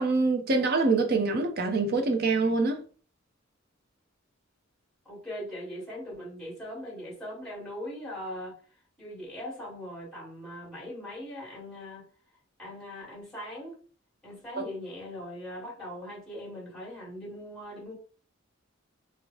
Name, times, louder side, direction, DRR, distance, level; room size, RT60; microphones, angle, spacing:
voice 1, 0.0-2.8 14.6-14.7, right 3 dB, 50° right, 0.6 m, -25 dB
voice 2, 5.0-8.6 9.0-12.0 12.6-13.8 14.2-17.9, equal, ahead, 1.5 m, -40 dB
3.0 x 2.0 x 3.7 m
head